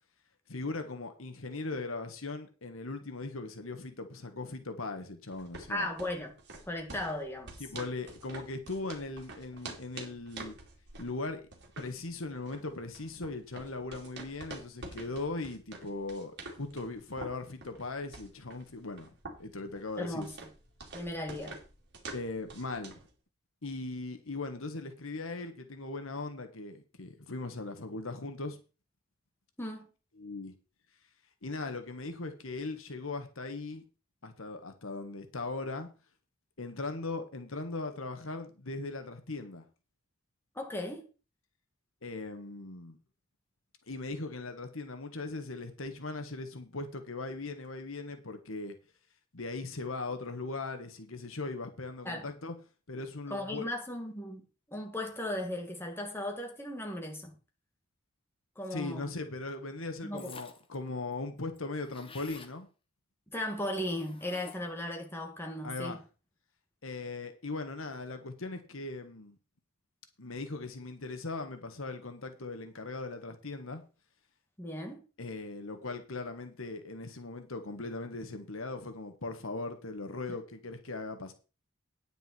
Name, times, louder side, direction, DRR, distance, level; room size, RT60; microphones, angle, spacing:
voice 1, 0.5-5.9 7.6-10.6 11.0-11.5 11.8-19.1 19.4-20.3 22.1-23.0 23.6-28.6 30.2-30.5 31.4-33.8 34.2-35.9 36.6-39.6 42.0-43.0 43.9-48.8 49.3-52.5 52.9-53.6 58.7-62.7 65.6-66.0 66.8-69.4 70.2-73.8 75.2-81.3, left 3 dB, 70° left, 1.5 m, -39 dB
sound 1, 5.3-23.1, right 2 dB, 55° right, 2.7 m, -48 dB
voice 2, 5.7-6.3 6.7-7.6 20.0-20.3 20.9-21.6 29.6-29.9 40.5-41.0 52.0-52.3 53.3-57.3 58.6-59.1 60.0-60.3 63.3-66.0 74.6-75.0, left 1 dB, 10° left, 2.3 m, -36 dB
sound 2, 60.2-60.7 61.1-61.2 61.4-62.6 63.8-64.8, left 4 dB, 25° left, 1.2 m, -51 dB
9.9 x 9.1 x 4.5 m
head